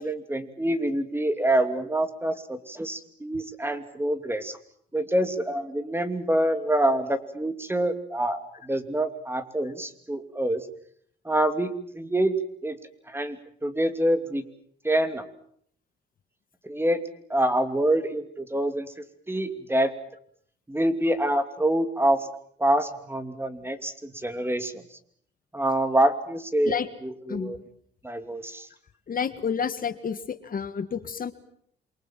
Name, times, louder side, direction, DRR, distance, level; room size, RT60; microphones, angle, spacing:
voice 1, 0.0-4.6 4.9-10.7 11.2-12.3 12.6-12.8 13.1-13.4 13.6-14.4 14.8-15.2 16.6-18.9 19.3-19.9 20.7-22.3 22.6-24.8 25.5-26.8 27.0-27.6 28.0-28.7, right 1 dB, 10° right, 10 dB, 2.7 m, -26 dB
voice 2, 27.3-27.6 29.1-31.3, left 7 dB, 45° left, 11 dB, 1.7 m, -30 dB
27.5 x 24.0 x 7.6 m, 0.65 s
cardioid pair, 90°, 20 cm